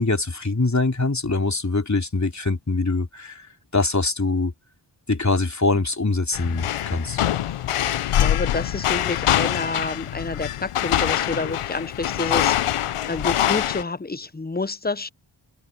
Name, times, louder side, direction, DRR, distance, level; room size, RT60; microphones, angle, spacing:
voice 1, 0.0-3.5 3.7-4.5 5.1-7.2, left 3 dB, 35° left, 3.5 m, -23 dB
sound 1, 6.3-13.8, left 11 dB, 90° left, 0.7 m, -24 dB
voice 2, 8.0-12.6 13.1-15.1, left 3 dB, 20° left, 0.8 m, -29 dB
cardioid pair, 50°, 50 cm